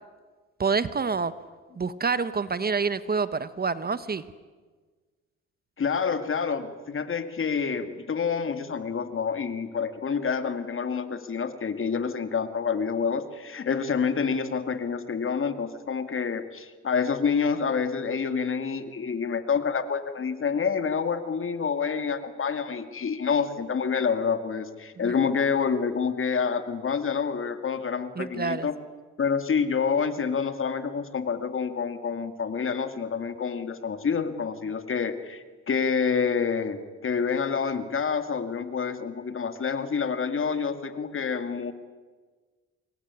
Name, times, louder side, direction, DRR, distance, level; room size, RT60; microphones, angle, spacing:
voice 1, 0.6-1.3 1.8-4.2 25.0-25.1 28.2-28.7, right 5 dB, 30° right, 14 dB, 1.2 m, -27 dB
voice 2, 5.8-28.7 29.2-41.7, left 6 dB, 45° left, 9 dB, 2.4 m, -28 dB
26.5 x 22.0 x 9.8 m, 1.4 s
cardioid pair, 90°, 30 cm